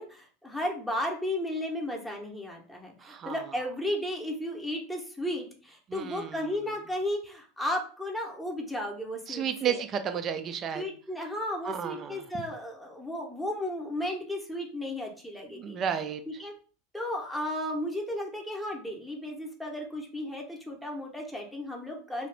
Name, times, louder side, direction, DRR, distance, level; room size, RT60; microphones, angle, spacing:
voice 1, 0.0-9.8 10.7-15.8 16.4-16.5 16.9-22.3, left 1 dB, ahead, -1 dB, 0.8 m, -34 dB
voice 2, 3.0-3.4 5.9-6.6 9.3-10.8 11.6-12.3 15.5-16.2, right 8 dB, 35° right, 9 dB, 0.5 m, -32 dB
2.7 x 2.4 x 3.3 m, 0.40 s
hypercardioid pair, 85°, 0 cm